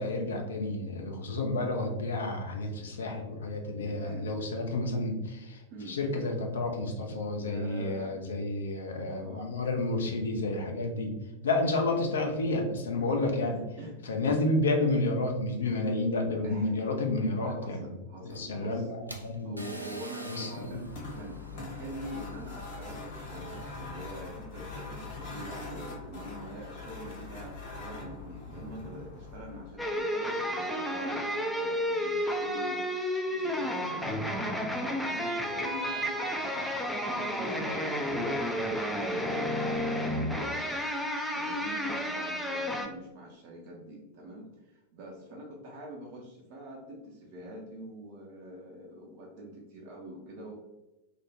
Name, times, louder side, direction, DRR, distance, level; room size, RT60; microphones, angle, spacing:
voice 1, 0.0-5.6 5.9-11.1 11.4-13.6 14.0-17.9 18.2-19.6 20.3-20.8, left 2 dB, 65° left, 3 dB, 0.5 m, -30 dB
voice 2, 3.8-4.3 5.7-6.0 7.4-8.2 9.1-9.5 13.0-14.0 16.4-16.8 17.4-18.9 19.4-20.8 21.1-40.8 41.3-50.5, right 1 dB, 40° right, -3 dB, 0.5 m, -45 dB
sound 1, 18.2-23.7, right 2 dB, 90° right, 0.3 m, -46 dB
sound 2, 20.6-30.0, left 3 dB, 50° left, 0.8 m, -42 dB
sound 3, 29.8-42.9, equal, 5° left, 0.3 m, -31 dB
2.4 x 2.1 x 3.3 m, 1.0 s
figure-of-eight pair, 90°, 0 cm